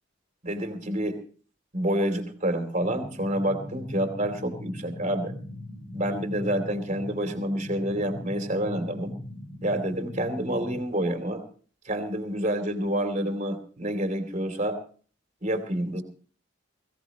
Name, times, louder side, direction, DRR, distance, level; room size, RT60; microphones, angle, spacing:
voice 1, 0.4-1.2 1.7-5.3 5.9-9.1 9.6-11.4 11.8-14.8 15.4-16.0, right 1 dB, 40° right, 6 dB, 2.8 m, -28 dB
sound 1, 2.8-10.8, left 1 dB, 85° left, 3.8 m, -40 dB
21.5 x 17.0 x 3.0 m, 0.42 s
head